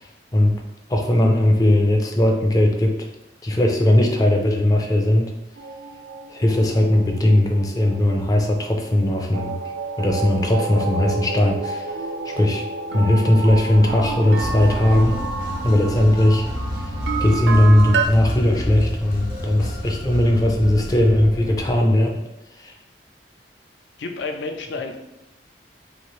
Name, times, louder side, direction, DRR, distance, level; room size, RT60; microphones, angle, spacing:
voice 1, 0.9-2.9 3.4-5.3 6.3-9.5 10.0-11.8 12.3-12.6 12.9-15.2 15.6-16.5 16.8-16.9 17.2-22.2 22.6-22.7, left 1 dB, 20° left, 1 dB, 0.4 m, -18 dB
sound 1, 5.6-9.1 9.3-18.1, right 4 dB, 85° right, 0.4 m, -30 dB
sound 2, 14.3-21.8, left 1 dB, 55° left, 0.9 m, -29 dB
voice 2, 24.0-25.0, left 3 dB, 85° left, 5 dB, 0.4 m, -30 dB
2.9 x 2.5 x 3.0 m, 0.90 s
head